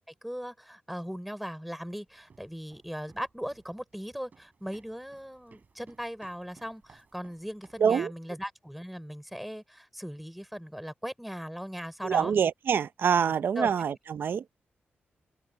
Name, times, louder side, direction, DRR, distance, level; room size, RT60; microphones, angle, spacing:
voice 1, 0.2-12.3 13.2-13.7, equal, ahead, 4.6 m, -38 dB
sound 1, 2.1-8.0, right 5 dB, 45° right, 4.9 m, -61 dB
voice 2, 7.8-8.1 12.0-14.6, right 7 dB, 65° right, 0.7 m, -26 dB
open air
wide cardioid pair, 115°, 4 cm